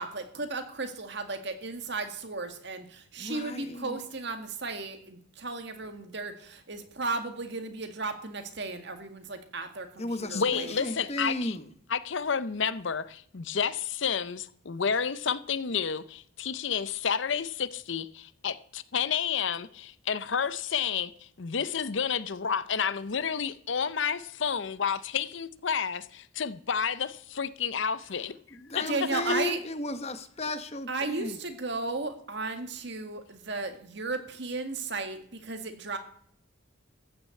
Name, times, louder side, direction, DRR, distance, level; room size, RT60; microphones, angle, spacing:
voice 1, 0.0-10.9 28.9-29.6 30.9-36.0, right 3 dB, 55° right, 2.0 m, -35 dB
voice 2, 3.2-4.0 10.0-11.7 28.5-31.4, left 1 dB, 30° left, 1.0 m, -34 dB
voice 3, 10.3-11.6 11.9-21.1 21.4-28.3 28.8-28.9, left 6 dB, 65° left, 0.7 m, -30 dB
14.5 x 6.8 x 8.4 m
head